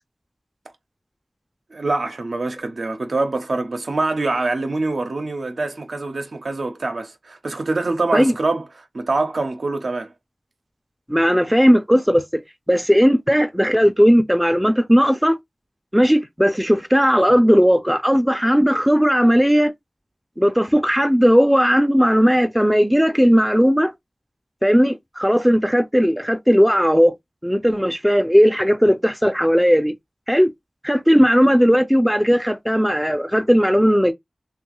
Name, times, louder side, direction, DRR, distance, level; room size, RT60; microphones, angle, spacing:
voice 1, 1.7-10.1, right 3 dB, 85° right, 0.5 m, -24 dB
voice 2, 11.1-12.4 12.7-15.4 15.9-19.7 20.4-23.9 24.6-27.1 27.4-29.9 30.3-30.5 30.8-34.1, equal, ahead, 0.3 m, -16 dB
3.0 x 2.2 x 2.9 m
wide cardioid pair, 70°, 0 cm